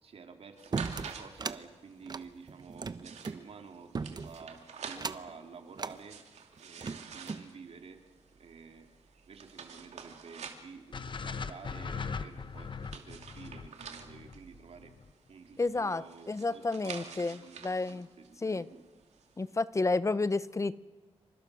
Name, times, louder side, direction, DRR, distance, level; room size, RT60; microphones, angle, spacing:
voice 1, 0.0-6.2 6.6-8.0 8.4-8.9 9.3-14.9 15.3-18.8, right 5 dB, 65° right, 4 dB, 3.1 m, -50 dB
sound 1, 0.6-19.5, right 6 dB, 85° right, 2.7 m, -49 dB
sound 2, 0.7-1.6 2.0-3.4 3.9-4.5 4.9-5.3 5.8-6.0 6.6-7.5, right 4 dB, 40° right, 1.0 m, -37 dB
sound 3, 10.9-15.1, left 5 dB, 45° left, 1.0 m, -40 dB
voice 2, 15.6-17.4 17.6-18.1 18.4-18.6 19.4-20.8, left 3 dB, 25° left, 16 dB, 0.7 m, -30 dB
28.0 x 25.5 x 6.4 m, 1.3 s
cardioid pair, 95°, 11 cm